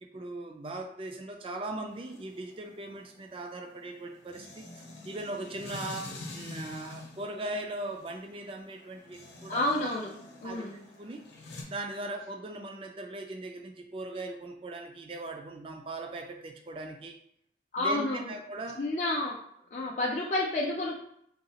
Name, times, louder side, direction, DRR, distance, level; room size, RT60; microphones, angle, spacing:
voice 1, 0.0-9.9 10.4-10.6 11.0-11.2 11.7-17.2 17.8-18.8, right 2 dB, 30° right, 3 dB, 0.3 m, -39 dB
sound 1, 1.9-11.6, left 2 dB, 85° left, 0.7 m, -47 dB
voice 2, 9.5-10.1 10.4-10.8 17.7-18.3 18.8-19.4 19.7-21.0, left 2 dB, 40° left, -3 dB, 0.4 m, -30 dB
3.8 x 2.3 x 2.8 m, 0.70 s
head